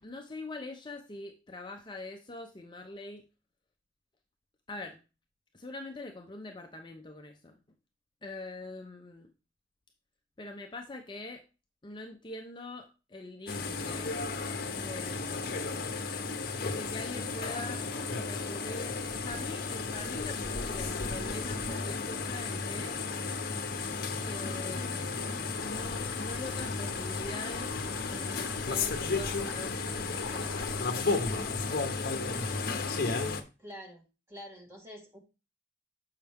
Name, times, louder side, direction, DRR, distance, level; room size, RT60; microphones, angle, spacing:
voice 1, 0.0-3.2 4.7-5.0 5.5-7.6 8.2-9.3 10.4-11.4 11.8-14.1 14.7-15.5 16.7-17.8 18.1-23.0 24.3-27.8 28.1-31.8, left 2 dB, 25° left, 4 dB, 0.6 m, -44 dB
sound 1, 13.5-33.4, left 4 dB, 55° left, 0.8 m, -33 dB
sound 2, 25.6-30.8, left 4 dB, 80° left, 0.5 m, -44 dB
voice 2, 33.6-35.2, equal, 15° right, 1 dB, 1.7 m, -47 dB
7.5 x 5.6 x 3.4 m, 0.31 s
head